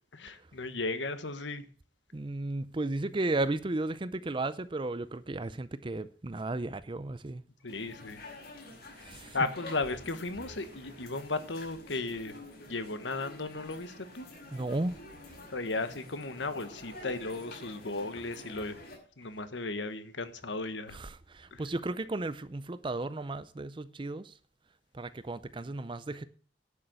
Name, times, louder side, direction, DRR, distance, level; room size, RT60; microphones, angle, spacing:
voice 1, 0.1-1.6 7.6-8.2 9.3-12.4 12.7-14.3 15.5-18.8 19.2-21.0 21.5-21.6, left 3 dB, 80° left, 1.3 m, -35 dB
voice 2, 2.1-7.4 9.0-9.4 14.5-15.0 20.9-24.3 24.9-26.2, right 2 dB, 25° right, 0.5 m, -34 dB
sound 1, 7.7-19.0, left 2 dB, 55° left, 5.8 m, -49 dB
11.0 x 6.5 x 7.8 m
head